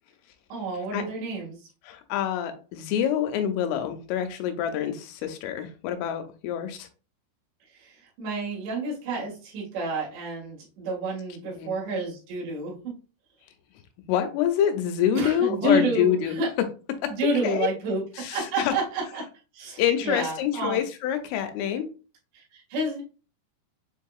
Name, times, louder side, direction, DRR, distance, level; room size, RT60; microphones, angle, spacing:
voice 1, 0.5-1.7 7.7-12.9 15.2-16.5 17.1-19.3 19.5-20.8 22.3-23.0, right 2 dB, 70° right, -5 dB, 3.7 m, -29 dB
voice 2, 1.9-6.9 11.6-11.7 14.1-16.4 17.0-17.2 17.4-17.7 18.2-18.7 19.8-21.9, left 10 dB, 90° left, 7 dB, 3.2 m, -26 dB
7.7 x 2.7 x 2.3 m, 0.35 s
omnidirectional pair, 5.5 m